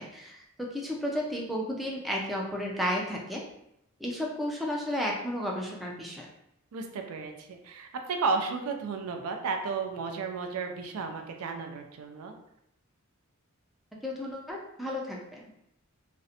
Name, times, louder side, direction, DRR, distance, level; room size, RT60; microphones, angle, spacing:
voice 1, 0.0-3.4 4.0-6.3 14.0-15.5, equal, ahead, -2 dB, 0.3 m, -33 dB
voice 2, 6.7-12.3, right 4 dB, 80° right, 4 dB, 0.4 m, -33 dB
2.5 x 2.0 x 2.6 m, 0.79 s
head